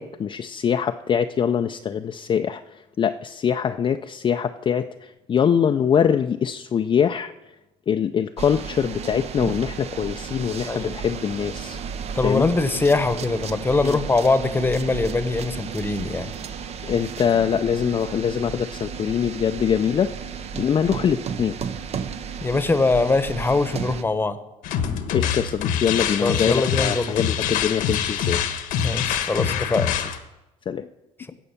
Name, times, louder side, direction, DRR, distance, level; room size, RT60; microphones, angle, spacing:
voice 1, 0.0-7.3 7.9-11.8 12.2-12.5 13.8-14.0 16.8-20.1 20.5-21.6 25.1-28.4 30.7-30.9, left 8 dB, 35° left, 6 dB, 0.5 m, -23 dB
sound 1, 8.4-24.0, right 6 dB, 50° right, 0.8 m, -33 dB
voice 2, 12.1-16.3 22.4-24.4 26.2-27.1 28.7-29.9, left 3 dB, 15° left, 11 dB, 1.0 m, -22 dB
sound 2, 24.6-30.2, left 8 dB, 80° left, 1.3 m, -25 dB
16.5 x 5.5 x 7.1 m, 1.0 s
cardioid pair, 100°, 14 cm